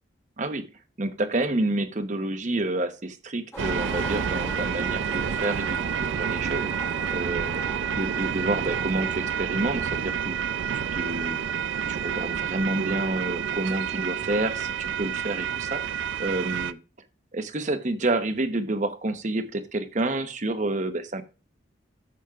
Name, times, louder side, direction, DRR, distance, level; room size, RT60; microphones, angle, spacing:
voice 1, 0.4-0.7 1.0-5.8 6.1-6.7 7.1-7.5 7.9-10.4 10.9-11.4 11.9-16.8 17.3-21.2, right 2 dB, 40° right, 9 dB, 0.9 m, -29 dB
Skateboard, 3.5-13.7, left 1 dB, 15° left, 1.2 m, -43 dB
sound 1, 3.6-16.7, right 7 dB, 80° right, 0.4 m, -29 dB
13.5 x 6.3 x 2.4 m, 0.34 s
head